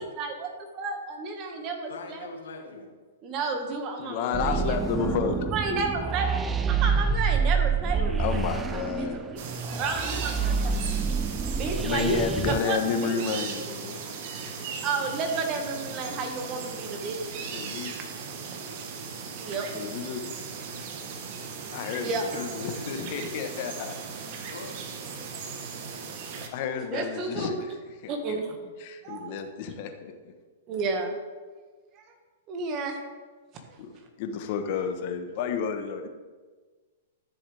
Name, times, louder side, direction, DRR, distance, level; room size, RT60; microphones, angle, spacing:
voice 1, 0.0-0.5 0.8-2.3 3.2-4.8 5.4-6.4 6.7-10.8 11.5-13.2 14.8-17.3 19.4-19.7 20.8-20.9 22.0-22.3 26.7-27.6 28.1-28.6 29.0-29.4 30.7-31.2 32.0-32.1 32.5-33.0, right 4 dB, 35° right, 3 dB, 1.8 m, -32 dB
voice 2, 1.9-2.9 9.5-11.2 21.9-23.4 24.5-24.8, left 4 dB, 85° left, 2 dB, 1.8 m, -44 dB
voice 3, 4.0-5.5 8.2-9.2 11.7-14.0 17.5-17.9 19.7-20.3 21.7-23.9 26.5-27.7 28.0-28.4 28.8-30.3 33.8-33.9 34.2-36.1, left 6 dB, 50° left, 6 dB, 1.2 m, -31 dB
sound 1, 4.3-12.6, right 5 dB, 15° right, 0.5 m, -27 dB
sound 2, 9.4-26.5, right 5 dB, 50° right, 1.3 m, -38 dB
12.5 x 7.1 x 3.5 m, 1.4 s
hypercardioid pair, 125°, 0 cm